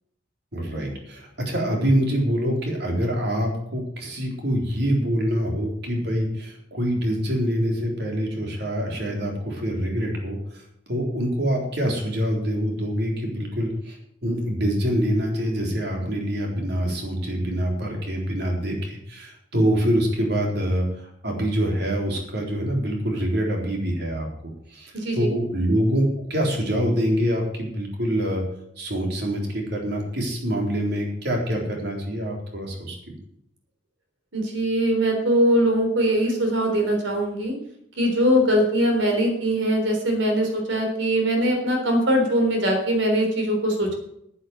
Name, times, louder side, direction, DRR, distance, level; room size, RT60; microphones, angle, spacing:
voice 1, 0.5-24.3 24.7-26.0 26.3-28.4 28.8-33.1, equal, 55° right, 1 dB, 3.8 m, -25 dB
voice 2, 24.9-25.3 34.3-37.5 38.0-44.0, equal, 75° right, 2 dB, 3.7 m, -21 dB
10.5 x 9.0 x 8.0 m, 0.74 s
head